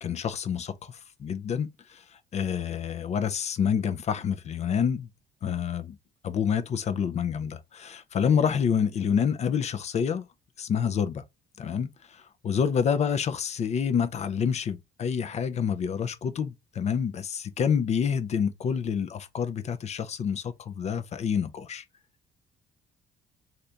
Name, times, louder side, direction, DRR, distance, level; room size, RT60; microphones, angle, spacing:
voice 1, 0.0-5.1 5.4-6.0 6.2-10.2 10.6-11.2 11.6-21.8, left 7 dB, 40° left, 0.5 m, -28 dB
2.8 x 2.5 x 3.3 m
cardioid pair, 110°, 17 cm